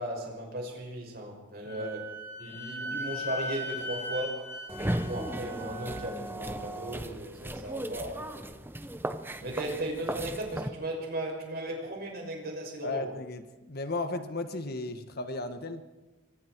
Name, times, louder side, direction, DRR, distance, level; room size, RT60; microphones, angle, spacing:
voice 1, 0.0-2.0 2.4-4.4 4.8-8.5 9.4-13.1, right 1 dB, 50° right, 1 dB, 6.4 m, -36 dB
Wind instrument woodwind instrument, 1.6-6.1, left 1 dB, 15° left, 6.3 m, -38 dB
voice 2, 2.5-3.0 9.4-9.5 12.8-13.4 13.7-15.8, left 2 dB, 55° left, 8 dB, 1.4 m, -35 dB
sound 1, 4.7-10.7, right 1 dB, 10° right, 0.9 m, -36 dB
27.5 x 24.0 x 4.7 m, 1.2 s
head